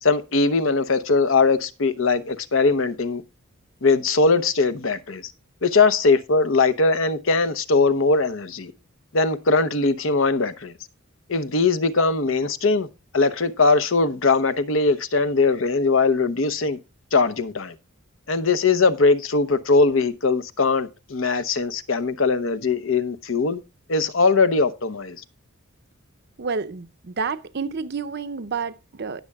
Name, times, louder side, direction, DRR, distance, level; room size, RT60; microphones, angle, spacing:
voice 1, 0.0-3.2 3.8-5.3 5.6-8.7 9.1-10.7 11.3-12.9 13.1-16.8 17.1-17.7 18.3-23.6 23.9-25.2, left 3 dB, 65° left, 0.8 m, -20 dB
voice 2, 26.4-29.2, right 5 dB, 50° right, 0.6 m, -29 dB
18.5 x 6.6 x 2.3 m
head